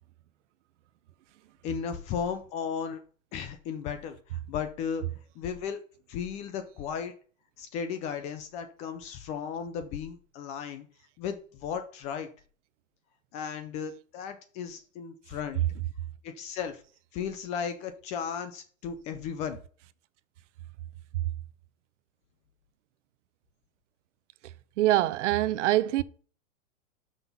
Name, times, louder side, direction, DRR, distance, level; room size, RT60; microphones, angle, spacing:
voice 1, 1.6-3.0 3.3-5.1 5.4-5.8 6.1-7.1 7.6-10.9 11.2-12.3 13.3-15.6 16.2-16.8 17.1-19.6, left 7 dB, 20° left, 0.3 m, -35 dB
voice 2, 24.4-26.0, right 14 dB, 65° right, 0.7 m, -25 dB
6.0 x 5.8 x 5.3 m
hypercardioid pair, 135°, 40 cm